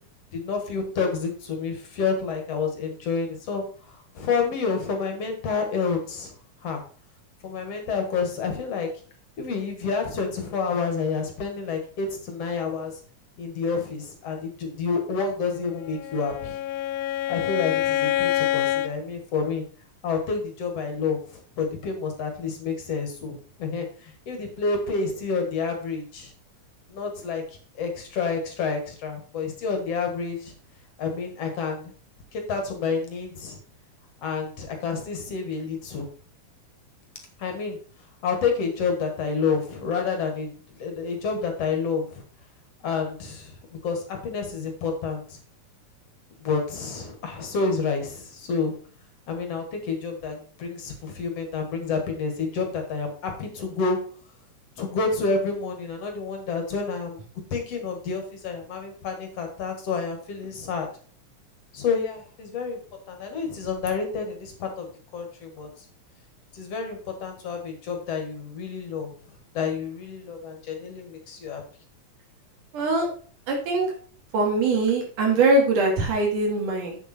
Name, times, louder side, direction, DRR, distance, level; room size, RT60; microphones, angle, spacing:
voice 1, 0.3-6.3 6.6-6.8 7.4-8.9 9.4-13.0 13.4-16.6 17.3-19.6 20.0-26.3 26.9-30.5 31.0-31.9 32.3-33.6 34.2-36.1 37.4-37.8 38.2-42.2 42.8-43.6 43.8-45.4 46.4-48.7 49.3-54.0 54.8-57.2 57.5-60.9 61.7-62.8 63.1-65.9 66.5-69.1 69.5-71.6, left 5 dB, 55° left, 4 dB, 2.5 m, -29 dB
Bowed string instrument, 15.8-19.0, left 12 dB, 85° left, 2.1 m, -26 dB
voice 2, 72.7-73.1 73.5-73.9 74.3-77.0, right 3 dB, 80° right, 1 dB, 3.9 m, -22 dB
8.4 x 7.0 x 4.2 m, 0.42 s
omnidirectional pair, 3.5 m